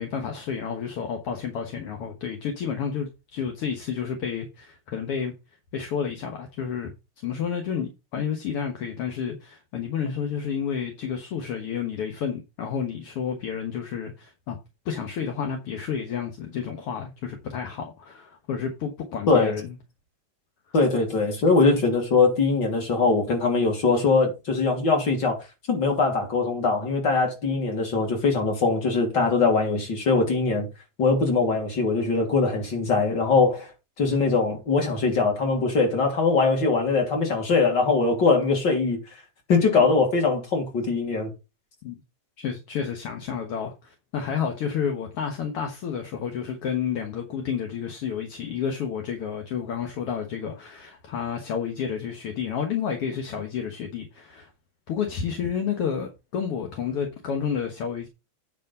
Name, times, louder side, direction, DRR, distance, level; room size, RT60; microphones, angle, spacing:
voice 1, 0.0-5.3 5.7-14.6 14.9-19.8 41.8-42.0 42.4-54.5 54.9-58.1, left 7 dB, 55° left, 1.9 m, -30 dB
voice 2, 20.7-25.4 25.7-30.7 31.0-33.7 34.0-39.0 39.5-41.3, left 4 dB, 35° left, 3.2 m, -22 dB
9.2 x 5.3 x 5.4 m
omnidirectional pair, 3.7 m